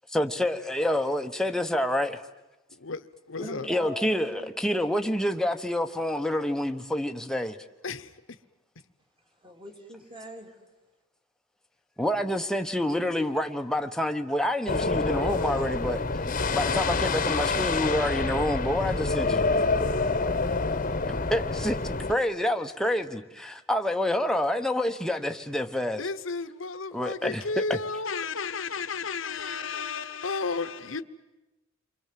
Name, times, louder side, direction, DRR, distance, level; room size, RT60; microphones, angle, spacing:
voice 1, 0.1-2.2 3.7-7.6 12.0-16.0 16.5-19.5 21.1-26.0 26.9-27.8, left 1 dB, 5° left, 1.0 m, -28 dB
voice 2, 2.8-3.7 7.8-8.4 26.0-31.0, left 4 dB, 70° left, 1.1 m, -33 dB
voice 3, 3.4-4.5 9.4-10.6 19.1-20.9, right 1 dB, 25° right, 3.0 m, -43 dB
sound 1, 14.7-22.1, left 3 dB, 40° left, 1.2 m, -27 dB
29.5 x 24.0 x 7.6 m
head